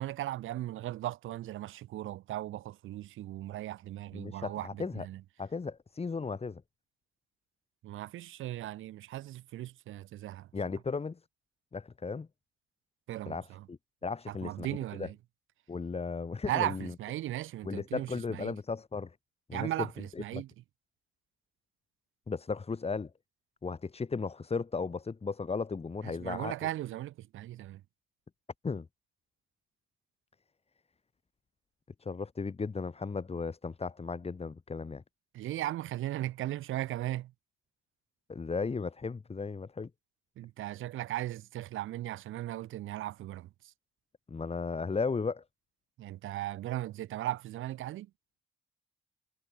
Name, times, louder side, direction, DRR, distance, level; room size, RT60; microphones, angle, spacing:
voice 1, 0.0-5.2 7.8-10.5 13.1-13.6 14.3-15.2 16.5-18.5 19.5-20.5 26.0-27.8 35.3-37.3 40.4-43.5 46.0-48.1, right 14 dB, 85° right, 7.3 m, -37 dB
voice 2, 4.1-5.1 5.4-6.6 10.5-11.2 11.7-12.3 13.3-15.1 15.7-16.9 17.6-19.1 19.5-19.7 20.2-20.4 22.3-23.1 23.6-26.5 28.6-28.9 32.0-35.0 38.3-39.9 44.3-45.4, left 4 dB, 30° left, 4.1 m, -35 dB
cardioid pair, 90°, 20 cm